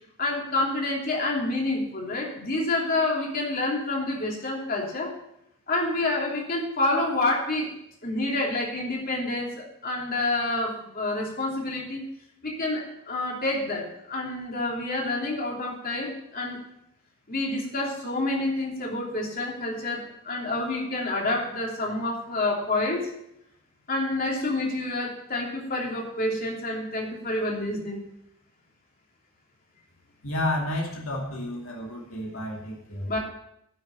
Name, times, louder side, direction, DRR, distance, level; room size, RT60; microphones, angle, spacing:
voice 1, 0.2-5.1 5.7-7.7 8.0-12.0 12.4-16.6 17.3-23.1 23.9-28.0 33.0-33.2, left 2 dB, 45° left, -2 dB, 3.0 m, -28 dB
voice 2, 30.2-33.1, left 1 dB, 75° left, -1 dB, 2.4 m, -31 dB
11.0 x 6.5 x 6.8 m, 0.78 s
head